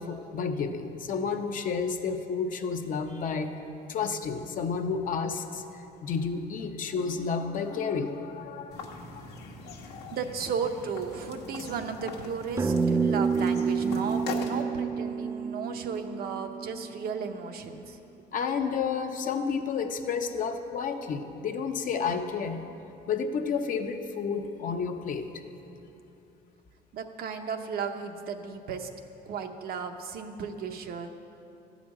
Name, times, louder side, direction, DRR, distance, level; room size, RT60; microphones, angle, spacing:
voice 1, 0.0-3.5 3.9-8.9 18.3-22.6 23.1-25.3, left 5 dB, 50° left, 6 dB, 0.8 m, -31 dB
sound 1, 8.7-14.6, left 4 dB, 75° left, 1.2 m, -41 dB
voice 2, 10.1-18.0 26.9-28.9 29.3-31.1, right 6 dB, 65° right, 5 dB, 0.8 m, -35 dB
sound 2, 12.6-17.2, right 5 dB, 15° right, 0.4 m, -28 dB
12.0 x 5.1 x 8.6 m, 2.8 s
cardioid pair, 110°, 17 cm